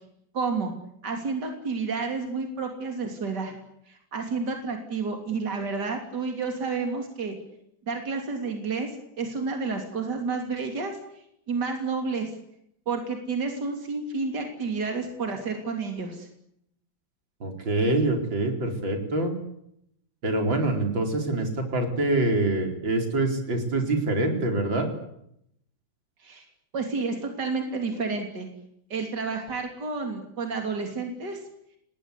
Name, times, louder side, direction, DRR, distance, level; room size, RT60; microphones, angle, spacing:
voice 1, 0.3-0.7 1.0-3.6 3.9-7.4 7.9-8.9 9.2-11.0 11.5-12.3 12.9-16.3 26.2-26.4 26.7-28.5 28.9-31.4, right 4 dB, 60° right, 4 dB, 3.8 m, -30 dB
voice 2, 17.4-19.3 20.2-24.9, right 2 dB, 85° right, 4 dB, 5.2 m, -25 dB
29.5 x 19.5 x 8.4 m, 0.76 s
omnidirectional pair, 2.0 m